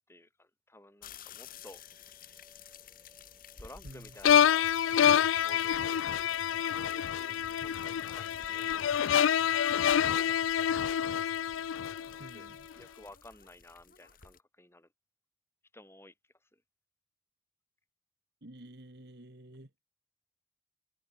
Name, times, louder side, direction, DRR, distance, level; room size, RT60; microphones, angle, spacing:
voice 1, 0.1-1.8 3.6-4.7 5.1-9.1 9.7-10.8 12.1-12.5 12.8-14.9 15.7-16.6, left 1 dB, 10° left, 4.3 m, -55 dB
sound 1, 1.0-14.4, left 8 dB, 45° left, 3.1 m, -53 dB
sound 2, 1.3-13.0, right 1 dB, 10° right, 3.5 m, -65 dB
voice 2, 3.8-4.2 12.2-12.7 18.4-19.7, right 1 dB, 55° right, 2.0 m, -50 dB
sound 3, 4.2-12.4, left 9 dB, 80° left, 0.4 m, -27 dB
head